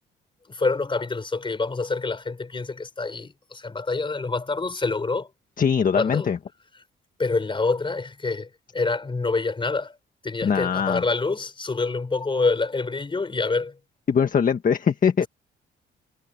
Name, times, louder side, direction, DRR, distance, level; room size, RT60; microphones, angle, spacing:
voice 1, 0.5-5.3 6.0-6.3 7.2-9.9 10.2-13.7, left 3 dB, 25° left, 4.3 m, -26 dB
voice 2, 5.6-6.4 10.4-11.0 14.1-15.3, left 7 dB, 45° left, 1.6 m, -21 dB
cardioid pair, 90°, 20 cm